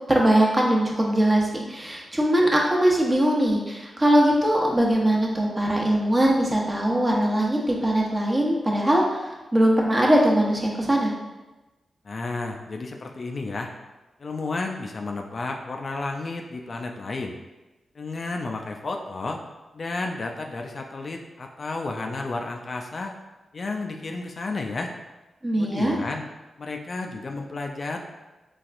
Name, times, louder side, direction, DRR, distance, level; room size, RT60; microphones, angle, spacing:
voice 1, 0.1-11.1 25.4-25.9, right 1 dB, 30° right, -2 dB, 0.9 m, -21 dB
voice 2, 12.0-13.7 14.2-17.4 17.9-19.4 19.7-23.2 23.5-24.9 25.6-26.2 26.6-28.0, left 3 dB, 55° left, 3 dB, 0.4 m, -32 dB
4.1 x 2.3 x 2.5 m, 1.1 s
supercardioid pair, 40°, 0 cm